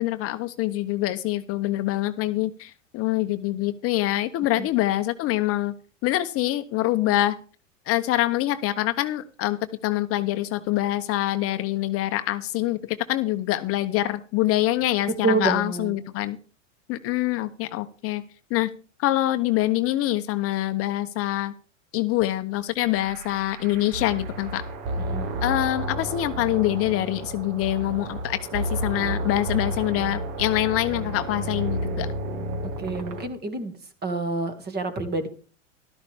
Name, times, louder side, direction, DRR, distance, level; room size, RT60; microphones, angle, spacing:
voice 1, 0.0-5.7 6.0-7.4 7.9-9.6 9.8-16.4 16.9-18.2 18.5-18.7 19.0-21.5 21.9-24.6 25.4-32.1, left 15 dB, 35° left, 10 dB, 0.8 m, -25 dB
voice 2, 15.2-15.9 25.0-25.3 32.8-33.7 34.0-35.3, right 3 dB, 25° right, 9 dB, 2.2 m, -27 dB
sound 1, 23.0-33.3, right 1 dB, 50° right, 1.9 m, -31 dB
13.5 x 12.5 x 3.5 m, 0.38 s
hypercardioid pair, 100°, 38 cm